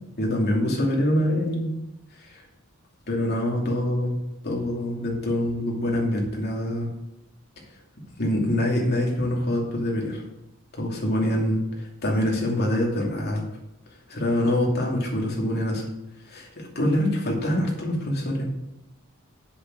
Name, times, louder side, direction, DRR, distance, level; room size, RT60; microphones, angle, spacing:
voice 1, 0.2-1.7 2.2-2.4 3.1-4.1 4.4-6.9 8.2-10.2 10.7-13.4 14.1-15.9 16.2-18.5, left 1 dB, 50° left, -1 dB, 2.7 m, -25 dB
7.6 x 6.7 x 6.8 m, 0.89 s
head